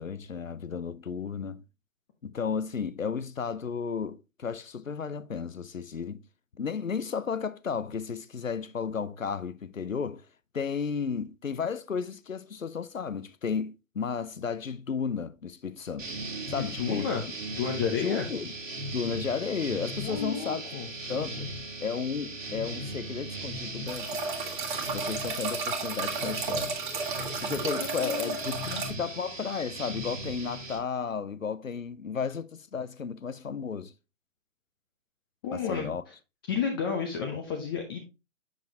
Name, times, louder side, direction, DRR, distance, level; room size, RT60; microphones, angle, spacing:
voice 1, 0.0-1.6 2.2-6.2 6.6-10.3 10.5-16.1 16.5-17.1 18.0-18.5 18.9-20.6 21.1-21.5 21.8-24.2 24.9-26.8 27.4-33.9 35.5-36.0, left 6 dB, 90° left, 0.6 m, -33 dB
sound 1, 16.0-30.8, right 2 dB, 75° right, 1.7 m, -38 dB
voice 2, 16.5-17.2 17.5-18.2 20.0-20.9 27.8-28.4 28.7-28.8 35.4-35.9 36.5-38.0, left 6 dB, 20° left, 0.6 m, -31 dB
sound 2, 23.9-28.9, right 4 dB, 40° right, 1.5 m, -33 dB
7.2 x 6.0 x 2.8 m
figure-of-eight pair, 130°, 39 cm